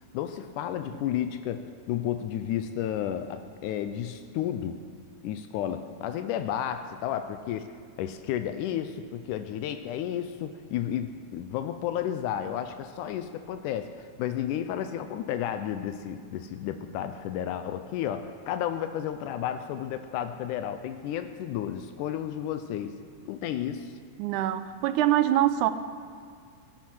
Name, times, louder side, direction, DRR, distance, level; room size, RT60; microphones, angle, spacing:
voice 1, 0.1-4.8 5.2-7.7 8.0-23.0 23.3-23.9, left 10 dB, 90° left, 9 dB, 2.2 m, -32 dB
voice 2, 24.2-25.7, right 13 dB, 80° right, 12 dB, 2.2 m, -24 dB
17.0 x 11.5 x 6.2 m, 2.2 s
omnidirectional pair, 3.6 m